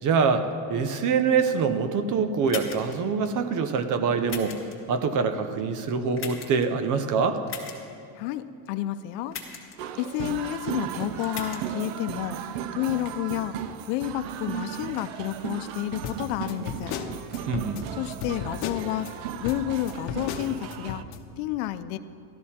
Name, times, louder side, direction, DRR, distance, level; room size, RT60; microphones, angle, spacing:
voice 1, 0.0-4.6 4.9-7.4 17.5-17.8, right 5 dB, 40° right, 9 dB, 0.7 m, -25 dB
sound 1, 2.5-3.0 4.3-4.7 6.2-6.6 7.5-7.8 9.3-9.8 11.2-11.6, left 6 dB, 25° left, 1.6 m, -37 dB
voice 2, 8.2-9.4 10.0-12.4 12.7-17.0 18.0-21.0 21.4-22.0, left 13 dB, 85° left, 12 dB, 0.7 m, -30 dB
sound 2, 9.8-21.0, right 9 dB, 80° right, 0.7 m, -36 dB
sound 3, 16.0-19.1 19.4-21.2, left 7 dB, 65° left, 1.0 m, -35 dB
13.0 x 13.0 x 4.3 m, 2.7 s
cardioid pair, 160°, 47 cm